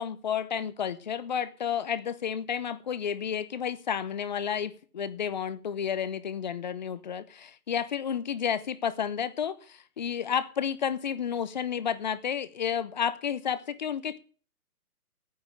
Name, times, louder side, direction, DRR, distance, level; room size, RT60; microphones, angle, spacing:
voice 1, 0.0-14.2, left 8 dB, 30° left, 15 dB, 0.7 m, -31 dB
9.5 x 9.3 x 9.1 m, 0.40 s
hypercardioid pair, 160°, 45 cm